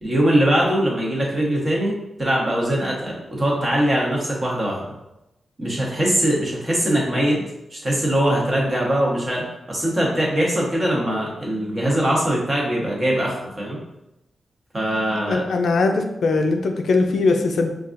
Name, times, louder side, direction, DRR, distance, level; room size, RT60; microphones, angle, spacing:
voice 1, 0.0-4.8 5.6-7.4 7.7-13.8 14.7-15.4, right 1 dB, 25° right, -3 dB, 1.0 m, -22 dB
voice 2, 15.3-17.7, left 3 dB, 75° left, 4 dB, 0.4 m, -20 dB
5.6 x 2.4 x 2.5 m, 0.91 s
wide cardioid pair, 145°, 0 cm